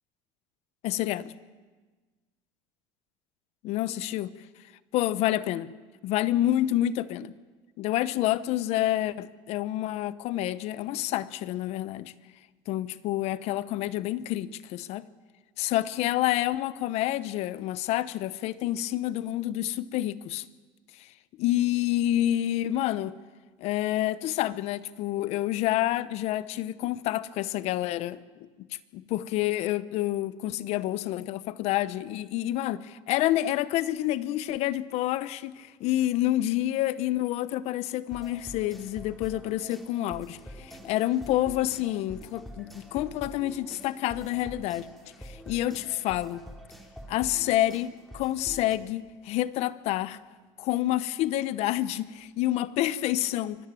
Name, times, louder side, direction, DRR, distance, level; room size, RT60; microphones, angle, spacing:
voice 1, 0.8-1.3 3.6-4.3 4.9-5.7 6.0-7.3 7.8-12.1 12.7-15.0 15.6-20.4 20.9-21.1 21.4-23.2 23.6-28.7 28.9-42.7 42.9-44.9 45.2-46.4 47.1-50.2 50.6-53.7, left 14 dB, 65° left, 0.9 m, -28 dB
sound 1, 38.1-48.8, equal, ahead, 3.4 m, -46 dB
25.0 x 14.5 x 9.1 m
supercardioid pair, 100°, 12 cm